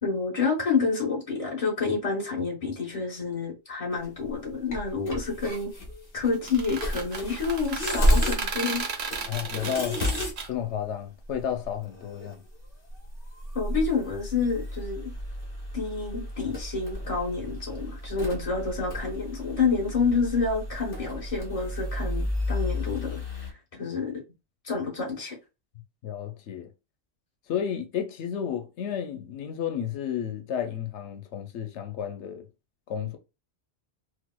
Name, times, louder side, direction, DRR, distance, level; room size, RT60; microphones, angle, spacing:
voice 1, 0.0-5.7 6.1-8.9 13.5-15.1 15.7-23.5 23.8-24.2 24.6-25.4, left 4 dB, 35° left, 1.2 m, -28 dB
sound 1, 4.0-4.3 4.7-8.5 8.8-8.9 9.1-10.4 10.7-10.8 11.2-12.3 12.6-12.7 12.9-23.5, left 1 dB, 55° left, 1.3 m, -31 dB
sound 2, 6.3-10.5, right 5 dB, 70° right, 1.0 m, -34 dB
voice 2, 9.3-10.0 10.5-12.4 26.0-26.7 27.5-32.5 32.9-33.2, left 9 dB, 90° left, 0.9 m, -32 dB
4.5 x 2.0 x 2.2 m
omnidirectional pair, 1.1 m